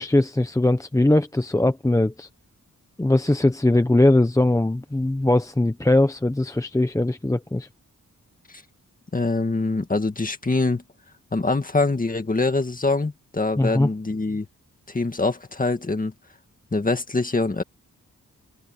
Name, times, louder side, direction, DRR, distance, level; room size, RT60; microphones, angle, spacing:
voice 1, 0.0-2.3 3.0-7.7 13.6-13.9, left 1 dB, 10° left, 0.8 m, -20 dB
voice 2, 9.1-10.8 11.3-14.5 14.9-16.1 16.7-17.6, left 3 dB, 25° left, 1.9 m, -24 dB
open air
wide cardioid pair, 130°, 32 cm